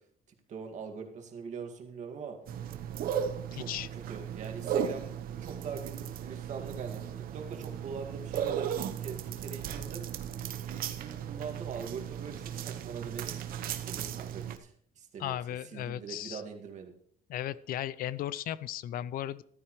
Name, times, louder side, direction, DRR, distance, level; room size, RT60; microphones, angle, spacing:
voice 1, 0.5-2.4 3.5-5.1 5.4-10.0 10.7-13.3 13.9-15.4 15.6-16.9, right 6 dB, 50° right, 3 dB, 1.9 m, -42 dB
sound 1, 2.5-14.6, right 9 dB, 70° right, 0.9 m, -36 dB
voice 2, 15.2-16.4 17.3-19.4, left 12 dB, 70° left, 18 dB, 0.5 m, -36 dB
14.0 x 12.0 x 3.1 m, 0.63 s
cardioid pair, 175°, 16 cm